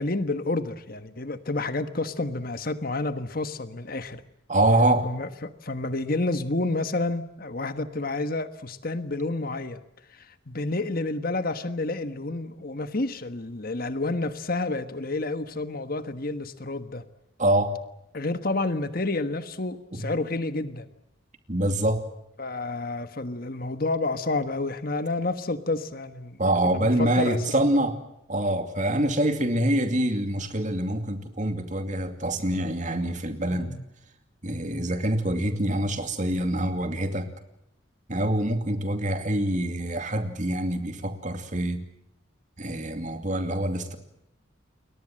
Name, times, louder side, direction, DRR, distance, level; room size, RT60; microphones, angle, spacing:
voice 1, 0.0-4.2 5.0-9.8 10.1-17.0 18.1-20.9 22.4-26.4 26.6-27.4 33.5-33.8, left 2 dB, 45° left, 10 dB, 1.4 m, -29 dB
voice 2, 4.5-5.1 17.4-17.7 19.9-20.1 21.5-22.0 26.4-28.0 28.3-33.7 34.4-37.3 38.1-41.8 42.6-44.0, right 1 dB, 35° right, 7 dB, 2.6 m, -25 dB
29.5 x 22.5 x 7.7 m, 0.80 s
head